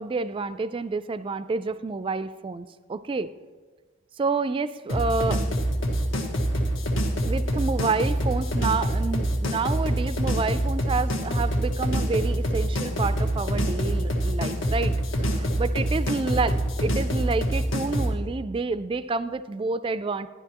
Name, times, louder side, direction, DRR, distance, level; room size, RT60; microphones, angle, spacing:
voice 1, 0.0-3.3 4.2-5.4 7.2-14.9 15.2-16.6 16.8-20.3, right 4 dB, 25° right, 13 dB, 0.3 m, -28 dB
sound 1, 4.9-18.1, equal, 70° left, 1.4 m, -25 dB
12.0 x 11.5 x 3.0 m, 1.3 s
head